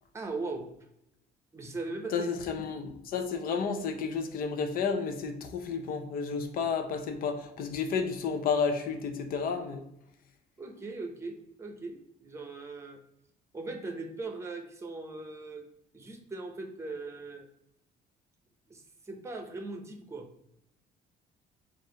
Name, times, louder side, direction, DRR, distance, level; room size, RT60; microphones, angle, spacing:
voice 1, 0.1-0.7 1.5-2.3 10.6-13.0 13.5-15.7 15.9-17.5 18.7-20.3, right 3 dB, 15° right, 5 dB, 0.7 m, -39 dB
voice 2, 2.1-9.8, left 5 dB, 60° left, 6 dB, 0.6 m, -31 dB
4.7 x 2.5 x 3.7 m, 0.80 s
cardioid pair, 110°, 17 cm